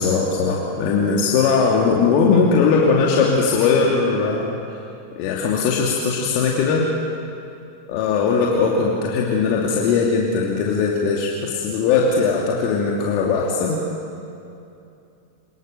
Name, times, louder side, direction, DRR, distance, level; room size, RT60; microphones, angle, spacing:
voice 1, 0.0-4.5 5.2-6.9 7.9-13.8, left 5 dB, 45° left, -2 dB, 2.8 m, -19 dB
27.0 x 20.5 x 7.0 m, 2.6 s
figure-of-eight pair, 90°, 0 cm